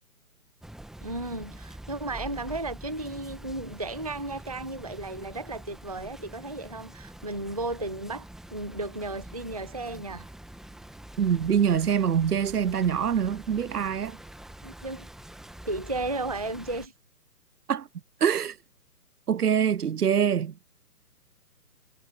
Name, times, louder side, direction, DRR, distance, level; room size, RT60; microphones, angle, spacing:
sound 1, 0.6-16.9, right 1 dB, ahead, 1.9 m, -45 dB
voice 1, 1.0-10.3 14.6-15.1 15.7-16.9, right 2 dB, 25° right, 0.4 m, -34 dB
voice 2, 11.2-14.2 17.7-17.9 18.2-18.6 19.3-20.5, right 8 dB, 75° right, 0.8 m, -24 dB
figure-of-eight pair, 140°, 46 cm